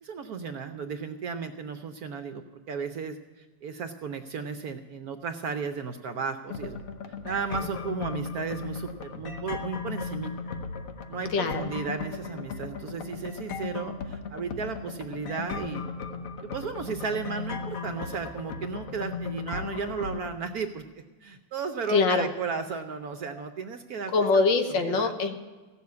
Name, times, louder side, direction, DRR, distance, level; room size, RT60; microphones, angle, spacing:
voice 1, 0.0-6.8 7.2-10.3 11.1-15.8 16.4-20.9 21.2-24.1 24.7-25.1, right 5 dB, 65° right, 7 dB, 1.0 m, -34 dB
sound 1, 6.5-20.3, left 5 dB, 50° left, 1.2 m, -36 dB
voice 2, 11.3-11.7 21.9-22.3 24.1-25.3, left 4 dB, 70° left, 7 dB, 1.7 m, -23 dB
16.0 x 7.2 x 9.4 m, 1.3 s
omnidirectional pair, 2.1 m